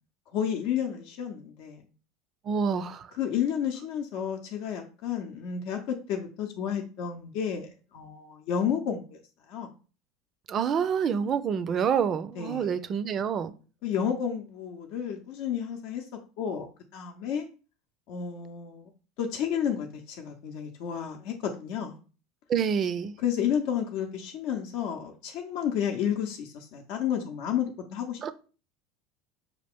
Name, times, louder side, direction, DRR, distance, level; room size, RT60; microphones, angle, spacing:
voice 1, 0.3-1.8 3.1-9.2 9.5-9.7 12.4-12.8 13.8-16.0 16.4-17.5 18.1-18.9 19.2-22.0 23.2-28.3, left 8 dB, 65° left, 0.6 m, -31 dB
voice 2, 2.5-3.1 10.5-13.5 22.5-23.1 28.2-28.3, right 7 dB, 40° right, 0.4 m, -27 dB
5.4 x 2.4 x 3.5 m
hypercardioid pair, 85°, 0 cm